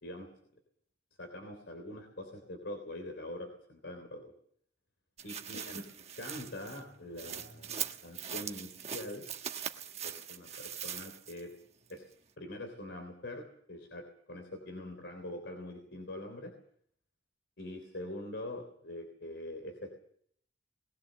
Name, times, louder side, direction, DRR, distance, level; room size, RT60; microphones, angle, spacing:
voice 1, 1.2-4.3 5.2-5.8 6.2-9.2 10.0-11.5 11.9-12.1 12.4-16.5 17.6-19.9, left 1 dB, 80° left, 5 dB, 3.4 m, -44 dB
sound 1, 5.2-11.5 11.9-12.0, right 8 dB, 35° right, 1.3 m, -41 dB
21.0 x 17.5 x 7.5 m, 0.64 s
head